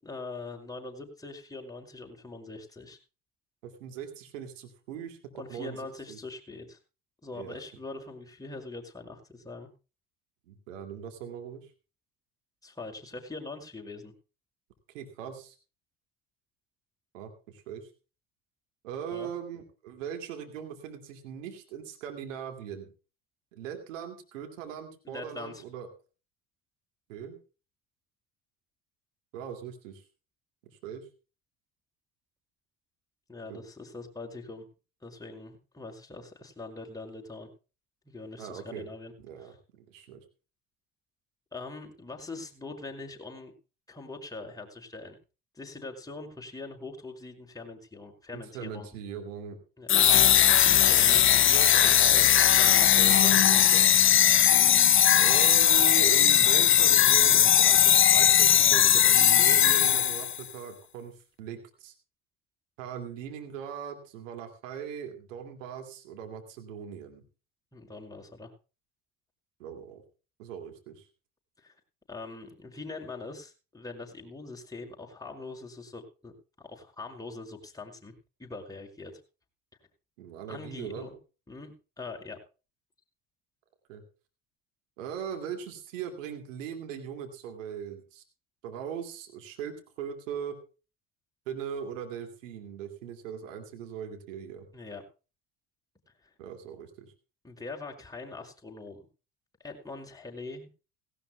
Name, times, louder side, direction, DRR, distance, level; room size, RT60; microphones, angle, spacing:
voice 1, 0.0-3.0 5.3-6.8 7.2-9.7 12.6-14.1 19.1-19.3 25.1-25.6 33.3-34.7 35.0-37.5 38.1-39.1 39.4-39.5 41.5-43.5 43.9-45.2 45.5-48.9 49.8-49.9 52.4-53.6 67.7-68.5 71.6-71.7 72.1-76.3 76.6-78.1 78.4-79.2 80.5-81.1 81.5-82.4 94.7-95.0 97.4-99.0 99.6-100.7, left 3 dB, 10° left, 0 dB, 5.5 m, -42 dB
voice 2, 3.6-6.2 7.3-7.6 10.5-11.7 14.9-15.6 17.1-17.9 18.8-22.9 23.5-25.9 27.1-27.4 29.3-30.0 30.6-31.0 33.5-33.6 38.4-38.9 39.2-40.2 48.3-49.6 50.5-52.6 52.9-53.9 55.1-61.9 62.8-67.2 69.6-70.0 70.4-71.1 80.2-81.1 83.9-84.0 85.0-88.2 88.6-90.6 91.5-94.7 96.4-97.1, right 8 dB, 90° right, 6 dB, 2.5 m, -40 dB
sound 1, 49.9-60.4, left 10 dB, 35° left, 0.7 m, -19 dB
17.5 x 17.0 x 2.3 m, 0.34 s
hypercardioid pair, 70°, 37 cm